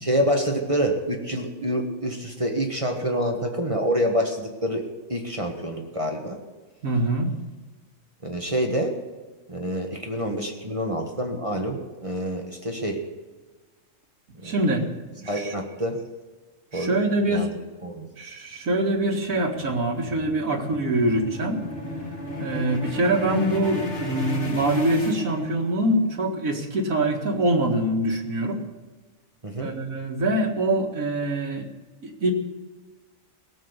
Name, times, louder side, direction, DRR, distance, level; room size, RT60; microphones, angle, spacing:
voice 1, 0.0-6.4 8.2-8.9 9.5-13.0 14.4-14.9 15.2-16.0 16.7-17.5 17.8-18.1 29.4-29.7, equal, 25° right, 2 dB, 1.4 m, -27 dB
voice 2, 6.8-7.3 14.4-14.8 15.2-15.5 16.7-17.5 18.2-21.6 22.4-28.6 29.6-31.7 32.0-32.3, right 1 dB, 85° right, 1 dB, 2.2 m, -24 dB
sound 1, 19.0-25.9, left 1 dB, 55° left, 2.4 m, -33 dB
17.5 x 7.6 x 8.1 m, 1.3 s
omnidirectional pair, 1.4 m